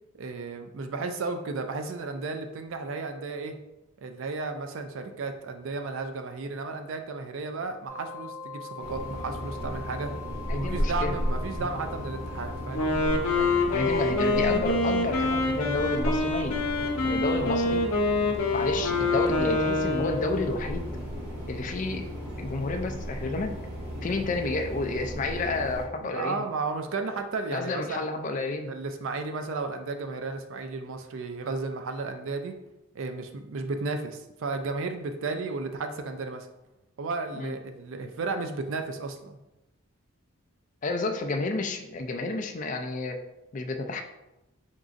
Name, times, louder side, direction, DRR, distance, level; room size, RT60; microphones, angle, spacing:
voice 1, 0.1-3.6 4.0-10.1 10.5-12.8 26.1-28.0 28.7-32.6 32.9-36.5 37.0-39.4, right 3 dB, 65° right, 7 dB, 0.4 m, -33 dB
sound 1, 7.9-20.7, left 5 dB, 15° right, 1.3 m, -45 dB
sound 2, 8.8-25.8, equal, 50° right, 1.3 m, -35 dB
voice 2, 10.5-11.2 11.6-11.7 13.4-16.6 17.0-17.9 18.5-20.9 21.5-22.1 22.4-23.5 24.0-26.4 27.5-28.7 37.3-37.5 40.8-43.2 43.5-44.0, left 2 dB, 35° left, 6 dB, 0.3 m, -30 dB
Wind instrument woodwind instrument, 12.7-20.6, left 3 dB, 85° left, 0.6 m, -26 dB
4.0 x 3.7 x 2.5 m, 0.96 s
head